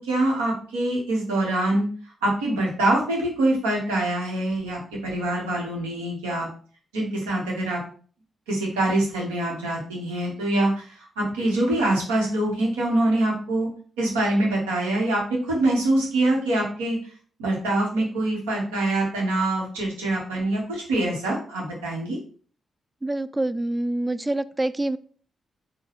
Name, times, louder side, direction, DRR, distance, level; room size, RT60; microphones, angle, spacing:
voice 1, 0.0-1.9 2.2-6.5 6.9-7.8 8.5-13.7 14.0-17.0 17.4-22.2, right 1 dB, 90° right, -2 dB, 1.0 m, -24 dB
voice 2, 23.0-25.0, right 1 dB, 25° right, 15 dB, 0.3 m, -26 dB
4.0 x 2.2 x 3.9 m, 0.43 s
hypercardioid pair, 40°, 0 cm